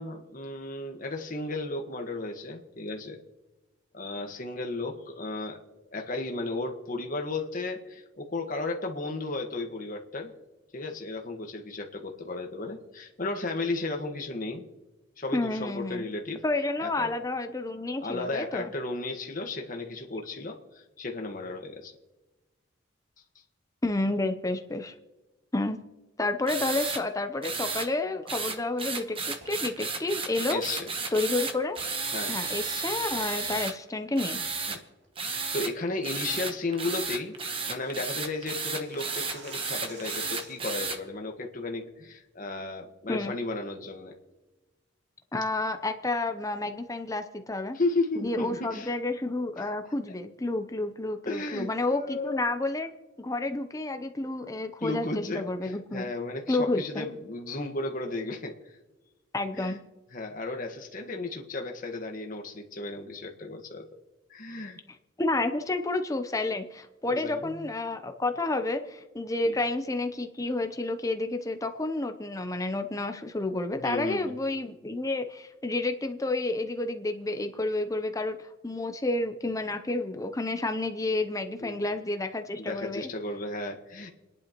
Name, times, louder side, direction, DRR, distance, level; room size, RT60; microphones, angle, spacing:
voice 1, 0.0-3.2 3.9-10.3 10.7-14.7 15.2-16.4 16.8-17.1 18.0-21.9 30.5-30.9 32.1-32.3 34.7-34.8 35.2-44.2 47.7-48.9 49.6-49.7 51.2-52.5 54.8-58.7 59.6-59.8 60.1-63.8 64.3-64.8 67.1-67.7 69.4-69.6 73.8-74.3 81.6-81.8 82.5-84.1, left 2 dB, 40° left, 3 dB, 1.4 m, -34 dB
voice 2, 15.3-16.1 16.4-18.7 23.8-24.9 25.5-25.8 26.2-30.6 31.1-31.8 32.3-34.4 43.1-43.4 45.3-47.8 48.2-52.9 53.2-56.1 56.5-57.1 59.3-59.8 65.2-83.1, left 2 dB, 15° left, 6 dB, 0.6 m, -30 dB
sound 1, 26.5-27.0 27.4-27.9 28.3-33.7 34.2-34.8 35.2-35.7 36.0-41.0, right 4 dB, 25° right, 1.0 m, -33 dB
sound 2, 29.4-29.7 31.7-32.0 32.4-32.5 33.1-33.3 33.7-34.0 34.4-34.7 35.0-35.1 35.5-35.8 36.1-36.2 36.5-36.6 36.8-36.9 37.2-40.8, right 2 dB, 55° right, 2.9 m, -50 dB
29.5 x 10.5 x 3.0 m, 1.1 s
head